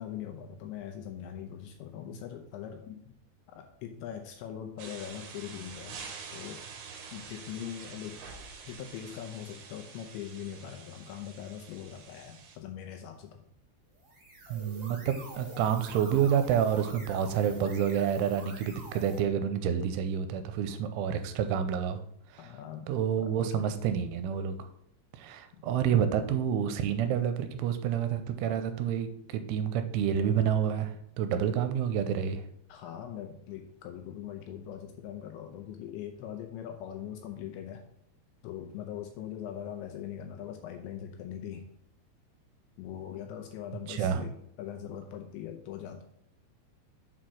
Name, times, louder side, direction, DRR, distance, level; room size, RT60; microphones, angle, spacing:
voice 1, 0.0-3.2 3.5-6.6 7.1-8.3 8.7-13.4 22.4-23.6 25.5-25.6 32.7-37.8 38.4-41.7 42.8-46.0, left 9 dB, 80° left, 5 dB, 2.8 m, -41 dB
sound 1, 4.8-12.6, right 5 dB, 70° right, 2.9 m, -47 dB
sound 2, 13.9-19.2, right 1 dB, 50° right, 1.1 m, -46 dB
voice 2, 14.5-22.0 22.9-24.6 25.1-32.4 43.9-44.2, right 8 dB, 85° right, 9 dB, 3.0 m, -29 dB
7.6 x 4.4 x 6.3 m, 0.73 s
omnidirectional pair, 5.5 m